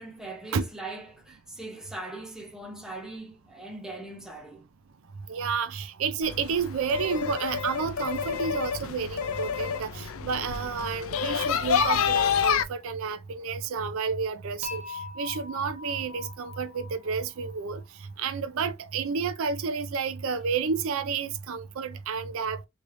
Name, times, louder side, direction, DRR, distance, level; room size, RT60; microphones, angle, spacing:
voice 1, 0.0-4.7, right 2 dB, 5° right, 0.7 m, -40 dB
voice 2, 5.3-22.7, right 5 dB, 65° right, 0.4 m, -30 dB
sound 1, 6.2-12.6, left 7 dB, 65° left, 0.4 m, -28 dB
Dishes pots and pans / Chink clink, 14.6-17.8, left 4 dB, 30° right, 0.8 m, -41 dB
3.2 x 3.2 x 2.5 m
head